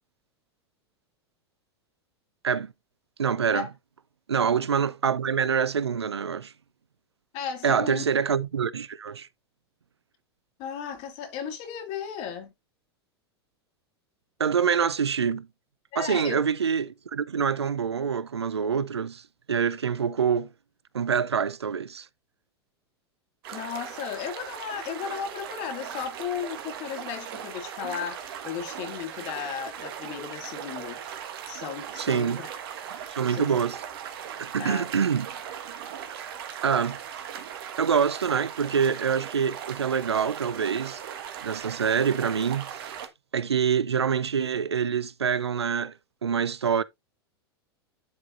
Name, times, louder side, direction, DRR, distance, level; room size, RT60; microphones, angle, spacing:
voice 1, 3.2-3.7 4.3-6.5 7.6-9.3 14.4-15.5 16.0-19.2 19.5-20.5 20.9-22.1 32.0-32.4 33.1-33.8 34.4-35.3 36.2-36.4 36.6-37.0 37.8-41.0 41.4-42.9 43.3-45.9 46.2-46.8, right 7 dB, 90° right, 0.5 m, -25 dB
voice 2, 7.3-8.0 10.6-12.5 15.9-16.4 23.5-31.0 31.5-32.5 33.0-33.6 34.6-34.8, left 8 dB, 50° left, 2.8 m, -35 dB
sound 1, 23.4-43.1, right 9 dB, 65° right, 1.8 m, -39 dB
12.0 x 4.8 x 2.6 m
hypercardioid pair, 95°, 13 cm